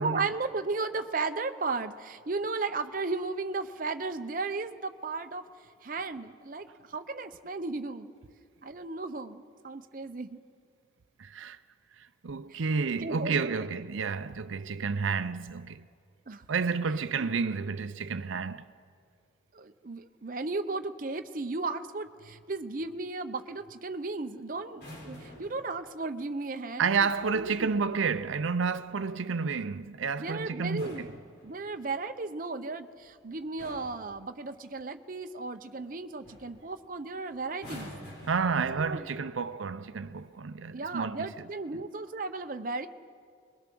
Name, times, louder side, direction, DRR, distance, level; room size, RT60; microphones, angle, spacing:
voice 1, 0.0-5.4 5.8-8.1 8.6-10.4 12.5-12.6 13.0-13.5 16.3-16.4 17.1-17.3 19.5-27.1 27.3-27.7 30.2-31.2 31.4-37.9 38.8-39.1 40.7-42.9, right 3 dB, 45° right, 0.7 m, -35 dB
voice 2, 11.2-11.6 12.0-15.9 16.5-18.7 26.8-31.1 38.3-41.3, right 5 dB, 85° right, 0.6 m, -30 dB
sound 1, 24.7-25.7 27.8-28.4 30.5-31.9 32.9-33.2 33.6-34.1 35.8-35.9 36.2-36.6 37.5-39.2 40.1-40.4, left 1 dB, 55° left, 5.5 m, -47 dB
25.5 x 21.0 x 6.1 m
head